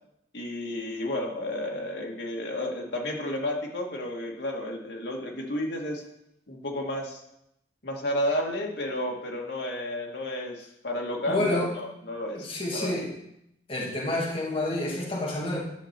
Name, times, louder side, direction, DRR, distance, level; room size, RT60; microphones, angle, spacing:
voice 1, 0.3-6.0 6.5-7.2 7.8-12.5 12.7-12.9, left 1 dB, 75° left, 0 dB, 1.9 m, -32 dB
voice 2, 11.3-11.7 12.3-13.1 13.7-15.6, left 1 dB, 30° left, -4 dB, 1.9 m, -29 dB
11.0 x 6.6 x 4.4 m, 0.81 s
head